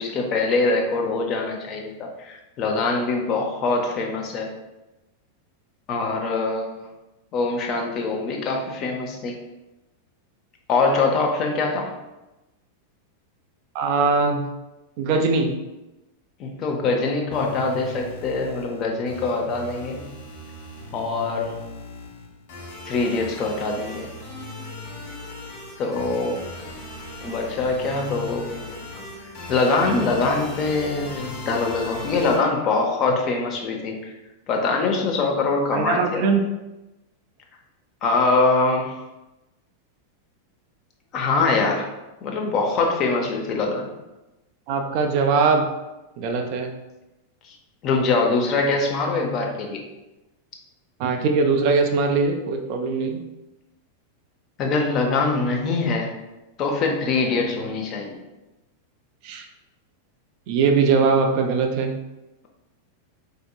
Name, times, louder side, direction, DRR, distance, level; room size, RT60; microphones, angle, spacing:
voice 1, 0.0-4.5 5.9-6.7 7.3-9.4 10.7-11.9 16.4-20.1 20.9-21.6 22.8-24.1 25.8-26.4 27.2-28.7 29.5-34.1 34.5-36.5 38.0-38.9 41.1-41.9 42.2-43.9 47.4-47.6 47.8-49.8 54.6-56.1 56.6-58.2, left 3 dB, 35° left, 1 dB, 0.6 m, -23 dB
voice 2, 13.7-14.5 15.0-15.6 35.7-36.4 44.7-45.6 46.2-46.7 51.0-53.2 59.2-59.5 60.5-61.9, right 4 dB, 45° right, 4 dB, 0.4 m, -21 dB
sound 1, 17.3-32.4, left 2 dB, 50° left, 1.0 m, -38 dB
4.2 x 2.7 x 2.3 m, 1.0 s
figure-of-eight pair, 90°, 0 cm